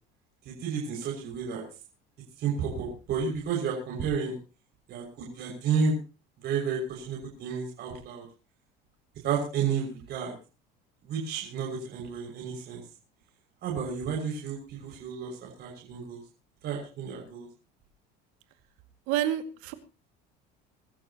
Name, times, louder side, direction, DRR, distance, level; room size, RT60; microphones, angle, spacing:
voice 1, 0.5-1.6 2.4-4.3 4.9-5.9 6.4-8.2 9.2-10.3 11.0-12.8 13.6-16.2 16.6-17.5, right 6 dB, 50° right, -1 dB, 6.1 m, -31 dB
voice 2, 19.1-19.7, right 12 dB, 80° right, 8 dB, 2.3 m, -28 dB
24.5 x 12.0 x 3.0 m, 0.33 s
cardioid pair, 135°, 21 cm